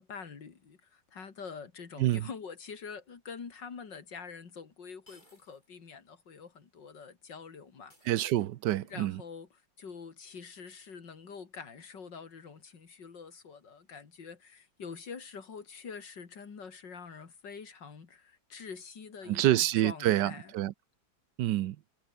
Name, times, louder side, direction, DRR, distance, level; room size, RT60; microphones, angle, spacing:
voice 1, 0.0-8.1 8.9-9.5 9.8-20.5, left 5 dB, 70° left, 3.2 m, -46 dB
sound 1, 3.6-3.7 5.1-5.8 6.1-6.2 7.9-8.8, left 1 dB, 25° left, 8.0 m, -63 dB
voice 2, 8.0-9.2 19.3-20.7 21.4-21.8, right 13 dB, 70° right, 1.3 m, -27 dB
omnidirectional pair, 2.0 m